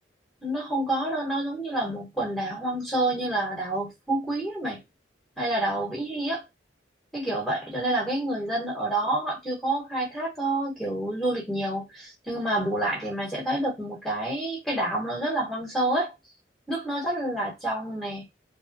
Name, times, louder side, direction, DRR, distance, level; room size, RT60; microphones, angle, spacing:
voice 1, 0.4-4.8 5.4-6.4 7.1-16.1 16.7-18.3, right 1 dB, ahead, 0.9 m, -28 dB
2.9 x 2.1 x 2.4 m
head